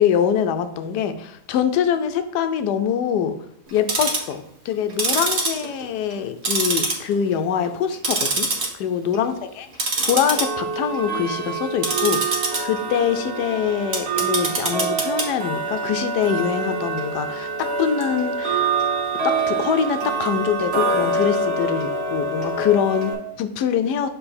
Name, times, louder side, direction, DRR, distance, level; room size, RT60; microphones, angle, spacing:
voice 1, 0.0-3.3 3.7-8.5 8.7-9.3 10.0-18.7 19.2-24.1, left 8 dB, 80° left, 9 dB, 1.2 m, -24 dB
Tick-tock, 3.7-4.3 4.9-6.2 6.5-7.3 7.7-8.7 9.0-9.3 9.7-23.1, right 3 dB, 45° right, 1.3 m, -25 dB
6.8 x 3.7 x 4.2 m, 0.77 s
omnidirectional pair, 1.8 m